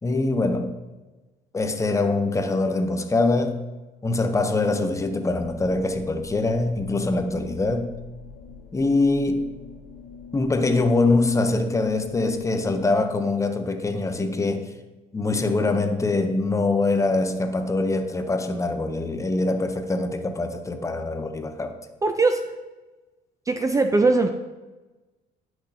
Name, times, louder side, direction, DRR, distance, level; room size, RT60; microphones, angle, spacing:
voice 1, 0.0-0.8 1.5-3.6 4.0-7.9 8.7-9.5 10.3-14.7 15.1-21.7, left 2 dB, 20° left, 6 dB, 0.7 m, -23 dB
sound 1, 5.3-13.0, left 6 dB, 80° left, 1.8 m, -45 dB
voice 2, 22.0-22.4 23.5-24.3, right 3 dB, 20° right, 6 dB, 0.4 m, -20 dB
10.0 x 6.0 x 2.8 m, 1.2 s
cardioid pair, 110°, 17 cm